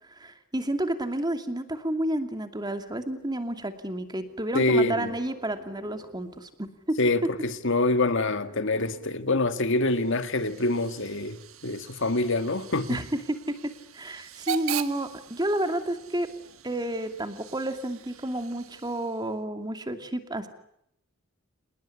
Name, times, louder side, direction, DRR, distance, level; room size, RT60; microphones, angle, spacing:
voice 1, 0.1-7.0 12.9-16.3 16.6-20.5, right 1 dB, 20° right, 2.6 m, -31 dB
sound 1, 2.6-3.8 4.1-6.7 6.9-7.0 7.2-9.7, equal, 35° right, 7.6 m, -50 dB
voice 2, 4.5-5.1 7.0-13.0, left 2 dB, 65° left, 1.9 m, -25 dB
Hiss / Train / Alarm, 9.7-19.4, right 9 dB, 80° right, 1.6 m, -41 dB
27.5 x 20.0 x 10.0 m
head